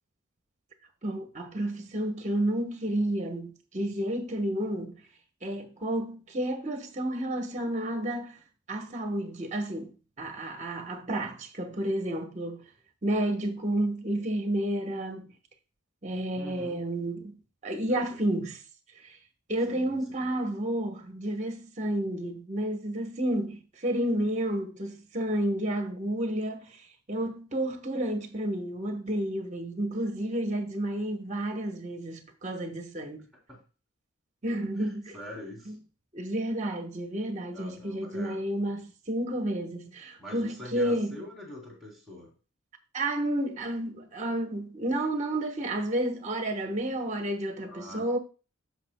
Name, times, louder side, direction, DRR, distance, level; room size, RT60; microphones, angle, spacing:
voice 1, 1.0-5.0 5.4-8.4 8.7-9.9 10.2-12.6 13.0-15.3 16.0-17.4 17.6-18.6 19.0-19.1 19.5-26.8 27.1-33.2 34.4-35.2 35.7-35.8 36.1-41.2 42.9-48.2, right 1 dB, 35° right, 1.1 m, -31 dB
voice 2, 16.3-16.8 17.9-18.2 19.7-20.3 33.5-33.6 34.8-35.7 37.5-38.4 40.2-42.3 47.7-48.2, left 1 dB, ahead, 3.2 m, -44 dB
15.0 x 5.5 x 2.2 m
head